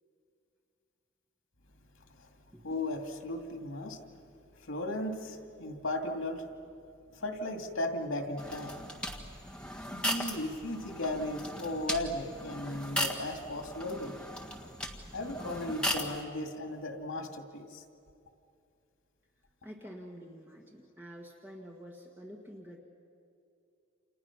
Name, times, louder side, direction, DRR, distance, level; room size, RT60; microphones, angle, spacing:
voice 1, 2.6-4.0 4.6-6.5 7.1-8.8 9.9-14.1 15.1-17.8, left 1 dB, 85° left, 4 dB, 2.4 m, -36 dB
sound 1, 8.4-16.2, equal, 5° left, 1.6 m, -37 dB
voice 2, 19.6-22.8, equal, 10° right, 0 dB, 1.5 m, -48 dB
29.5 x 28.5 x 6.1 m, 2.6 s
head